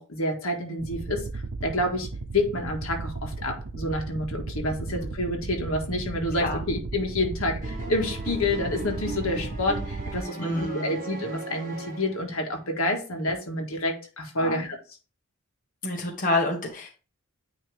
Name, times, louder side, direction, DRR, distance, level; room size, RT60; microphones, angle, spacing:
voice 1, 0.0-2.1 2.3-14.8, left 1 dB, 75° left, 2 dB, 1.6 m, -28 dB
sound 1, 0.8-10.2, right 3 dB, 85° right, 0.7 m, -35 dB
sound 2, 7.6-12.5, right 2 dB, 40° right, 1.6 m, -38 dB
voice 2, 10.4-11.1 14.4-14.7 15.8-16.9, left 2 dB, 40° left, 0 dB, 1.3 m, -28 dB
9.3 x 3.3 x 3.4 m, 0.34 s
head